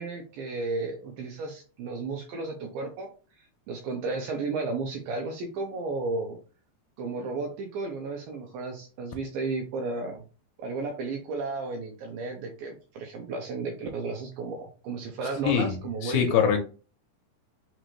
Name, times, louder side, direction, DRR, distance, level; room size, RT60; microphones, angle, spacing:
voice 1, 0.0-3.1 3.4-6.4 7.0-10.2 10.6-16.4, right 3 dB, 80° right, 2 dB, 2.1 m, -33 dB
voice 2, 15.4-15.8 16.0-16.6, left 8 dB, 80° left, 4 dB, 2.4 m, -23 dB
6.1 x 2.6 x 3.0 m, 0.36 s
omnidirectional pair, 4.7 m